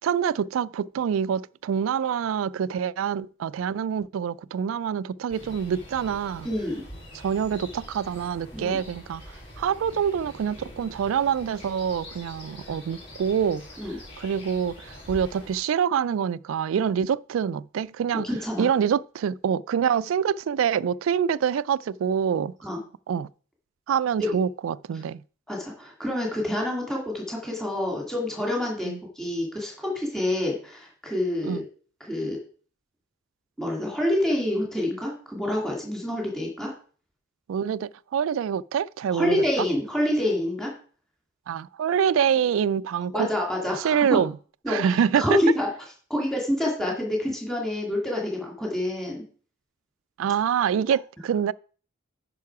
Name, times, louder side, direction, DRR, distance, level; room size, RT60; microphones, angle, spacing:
voice 1, 0.0-6.5 7.1-9.2 9.6-18.3 18.6-22.5 23.1-23.3 23.9-25.2 28.8-29.0 31.4-31.6 37.5-39.7 41.5-43.3 43.8-44.3 44.7-45.4 50.2-51.5, right 8 dB, 85° right, 0.3 m, -26 dB
sound 1, 5.3-15.6, left 1 dB, 30° left, 3.7 m, -44 dB
voice 2, 6.4-6.8 8.5-8.8 13.8-14.0 18.2-18.7 22.6-22.8 24.2-24.3 25.5-28.9 29.2-31.6 32.0-32.4 33.6-36.7 39.1-40.7 43.1-44.2 44.6-45.7 46.1-49.2, left 1 dB, ahead, 2.4 m, -27 dB
9.3 x 5.6 x 4.7 m
head